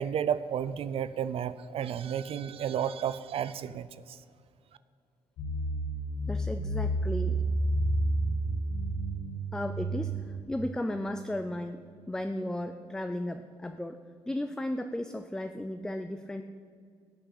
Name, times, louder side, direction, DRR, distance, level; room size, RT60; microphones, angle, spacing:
voice 1, 0.0-4.2, right 9 dB, 60° right, 15 dB, 0.4 m, -32 dB
sound 1, 5.4-10.4, right 1 dB, 90° left, 2.5 m, -30 dB
voice 2, 6.3-7.4 9.5-14.0 14.3-16.4, left 1 dB, 5° left, 8 dB, 0.5 m, -35 dB
16.5 x 5.9 x 8.5 m, 2.3 s
cardioid pair, 110°, 11 cm